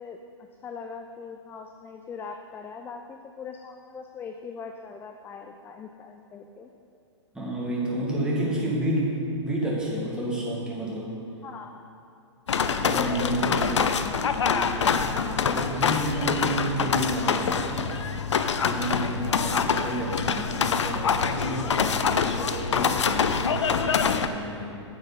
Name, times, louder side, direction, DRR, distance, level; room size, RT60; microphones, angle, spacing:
voice 1, 0.0-6.7 11.4-11.8 12.9-13.5, left 5 dB, 15° left, 5 dB, 0.4 m, -41 dB
voice 2, 7.3-11.2 12.8-13.9 14.3-18.0 18.6-24.8, right 1 dB, 5° right, -5 dB, 2.1 m, -31 dB
sound 1, 12.5-24.3, left 6 dB, 75° left, 0.5 m, -25 dB
8.8 x 8.6 x 4.0 m, 2.6 s
figure-of-eight pair, 105°, 15 cm